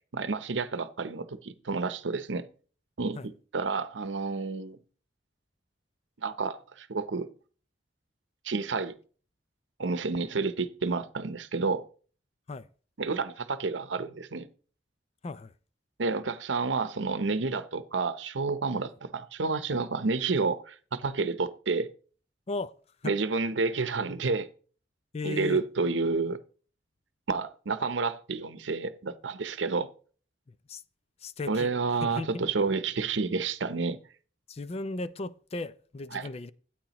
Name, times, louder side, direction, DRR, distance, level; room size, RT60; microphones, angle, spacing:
voice 1, 0.1-2.5 3.0-4.8 6.2-7.3 8.4-8.9 9.8-11.9 13.0-14.5 16.0-21.9 23.0-24.5 25.2-26.4 27.3-29.9 31.5-34.0 36.1-36.3, right 4 dB, 90° right, 0.7 m, -30 dB
voice 2, 25.1-25.6 30.7-30.8 31.2-31.7 32.0-32.3 34.5-36.5, left 3 dB, 35° left, 0.4 m, -35 dB
13.0 x 8.7 x 3.0 m
head